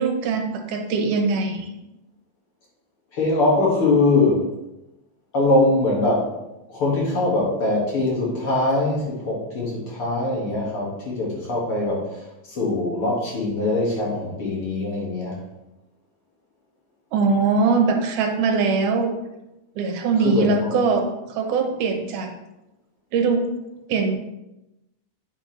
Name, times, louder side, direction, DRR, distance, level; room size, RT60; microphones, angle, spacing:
voice 1, 0.0-1.7 17.1-19.1 19.8-22.3 23.1-23.4 23.9-24.2, right 4 dB, 85° right, 4 dB, 2.5 m, -21 dB
voice 2, 3.1-4.5 5.3-6.3 6.7-15.4 20.2-20.8, left 2 dB, 50° left, -4 dB, 2.5 m, -22 dB
8.8 x 6.4 x 3.2 m, 0.93 s
omnidirectional pair, 3.6 m